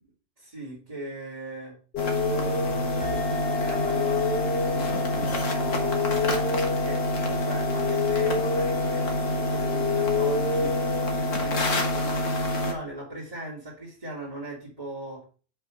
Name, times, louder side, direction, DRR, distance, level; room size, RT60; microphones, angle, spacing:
voice 1, 0.4-1.7 2.3-15.2, right 1 dB, 30° right, -6 dB, 2.5 m, -39 dB
sound 1, 1.9-11.6, left 5 dB, 55° left, 1.1 m, -30 dB
sound 2, 2.0-12.7, left 1 dB, 85° left, 1.8 m, -27 dB
sound 3, 3.0-12.1, left 5 dB, 5° left, 1.1 m, -37 dB
5.5 x 5.5 x 6.1 m, 0.39 s
omnidirectional pair, 1.3 m